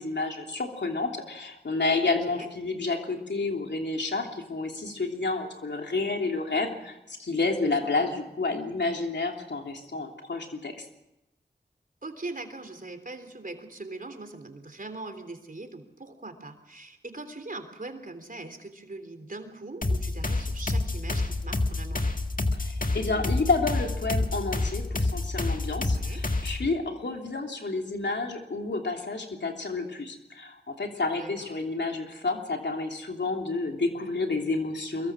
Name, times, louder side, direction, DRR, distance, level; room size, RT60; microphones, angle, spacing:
voice 1, 0.0-10.9 22.5-35.1, left 3 dB, 75° left, 2 dB, 3.1 m, -30 dB
voice 2, 2.0-2.5 7.8-8.1 12.0-22.1 25.8-26.3 31.2-31.5, right 2 dB, 50° right, 7 dB, 3.5 m, -41 dB
sound 1, 19.8-26.7, left 2 dB, 50° left, 1.9 m, -28 dB
23.5 x 22.0 x 6.2 m, 0.92 s
cardioid pair, 40°, 18 cm